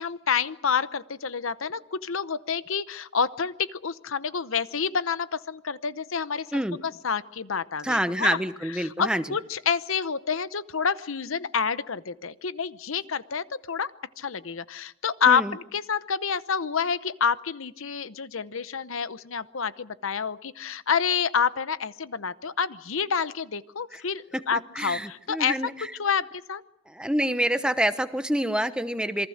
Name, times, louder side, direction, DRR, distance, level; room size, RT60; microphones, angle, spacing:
voice 1, 0.0-6.6 7.0-8.4 9.0-13.9 14.2-25.6 26.0-26.6, left 6 dB, 70° left, 15 dB, 0.8 m, -28 dB
voice 2, 7.8-9.3 15.3-15.6 23.9-24.0 24.3-25.9 26.9-29.3, right 1 dB, 5° right, 10 dB, 0.9 m, -27 dB
27.5 x 23.5 x 6.5 m, 0.75 s
head